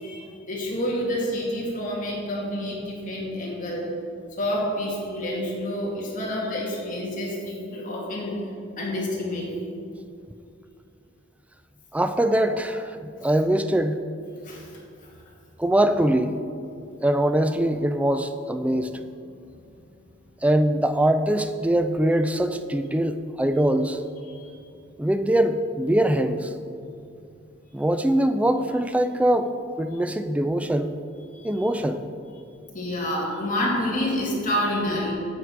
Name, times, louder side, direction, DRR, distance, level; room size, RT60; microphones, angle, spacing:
voice 1, 0.0-3.9 4.4-8.3 8.8-9.5 14.4-14.7 15.0-15.1 24.2-24.4 31.3-31.7 32.7-35.1, left 1 dB, 40° left, -4 dB, 2.3 m, -28 dB
voice 2, 11.9-14.0 15.6-16.4 17.0-18.9 20.4-24.0 25.0-26.5 27.7-30.9 31.4-32.0, right 1 dB, 5° right, 9 dB, 0.3 m, -22 dB
9.8 x 8.0 x 4.6 m, 2.5 s
head